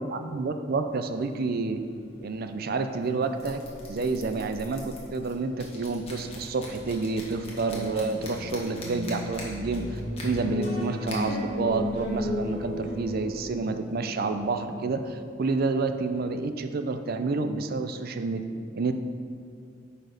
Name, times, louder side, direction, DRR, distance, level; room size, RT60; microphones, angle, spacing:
voice 1, 0.1-1.8 2.2-18.4 18.7-18.9, right 3 dB, 50° right, 8 dB, 0.5 m, -29 dB
sound 1, 0.9-13.5, left 1 dB, 30° left, 1.5 m, -45 dB
sound 2, 8.0-13.7 14.0-14.1, left 1 dB, 20° right, 2.1 m, -40 dB
sound 3, 9.8-16.4, left 2 dB, 45° left, 2.0 m, -34 dB
9.2 x 4.2 x 5.2 m, 2.3 s
head